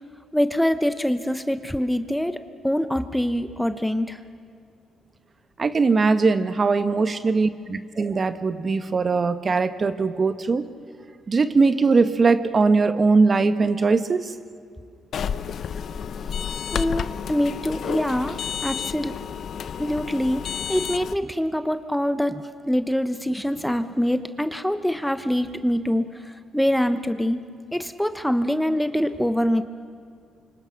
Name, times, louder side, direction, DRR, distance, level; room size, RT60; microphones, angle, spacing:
voice 1, 0.3-4.2 16.7-19.2 19.8-20.4 20.7-27.4 27.7-29.6, equal, ahead, 10 dB, 1.0 m, -24 dB
voice 2, 5.6-10.7 11.3-14.3, right 4 dB, 35° right, 10 dB, 1.1 m, -20 dB
sound 1, 15.1-21.1, left 7 dB, 60° left, 0.8 m, -30 dB
28.0 x 25.0 x 5.9 m, 2.3 s
cardioid pair, 90°, 0 cm